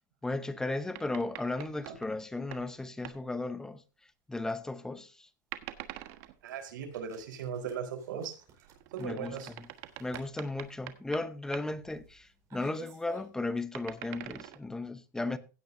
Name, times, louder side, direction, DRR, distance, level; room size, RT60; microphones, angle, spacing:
voice 1, 0.2-3.8 4.3-5.3 9.0-9.7 10.0-15.4, left 2 dB, 5° left, 0.8 m, -35 dB
sound 1, 0.9-2.7 3.0-3.2 5.5-6.3 8.6-11.3 11.5-11.6 13.6-14.6, right 15 dB, 55° right, 1.3 m, -45 dB
voice 2, 6.4-8.4 8.9-9.5, right 7 dB, 85° right, 4.1 m, -38 dB
sound 2, 6.5-13.6, right 4 dB, 30° right, 4.5 m, -55 dB
16.5 x 9.1 x 2.7 m
supercardioid pair, 150°, 10 cm